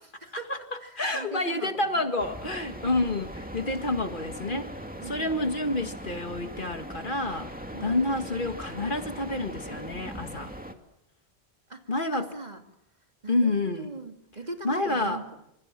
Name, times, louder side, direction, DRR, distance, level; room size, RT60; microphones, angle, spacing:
voice 1, 0.2-0.5 0.8-2.1 5.0-5.8 7.7-8.0 11.7-12.6 13.2-15.4, right 3 dB, 40° right, 4 dB, 2.7 m, -41 dB
voice 2, 1.0-4.7 5.1-7.5 7.8-10.5 11.9-12.3 13.3-13.9 14.6-15.2, left 2 dB, 50° left, 6 dB, 2.1 m, -28 dB
sound 1, 2.2-10.7, equal, 10° right, 2.3 m, -40 dB
27.5 x 27.0 x 7.6 m, 0.82 s
omnidirectional pair, 1.1 m